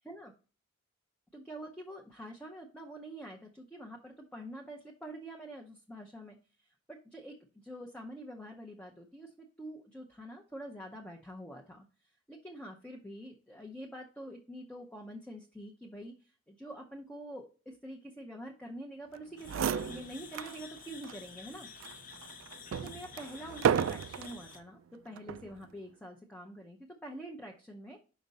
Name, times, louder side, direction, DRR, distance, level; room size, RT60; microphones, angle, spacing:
voice 1, 1.3-6.4 6.9-21.7 22.7-28.0, right 1 dB, 5° left, 1 dB, 0.6 m, -46 dB
sound 1, 19.2-19.3 19.4-20.6 21.0-21.2 21.8-24.4 25.2-25.5, right 8 dB, 75° right, 0.3 m, -32 dB
sound 2, 19.4-24.6, left 6 dB, 40° left, 0.7 m, -50 dB
5.2 x 5.1 x 4.0 m, 0.36 s
head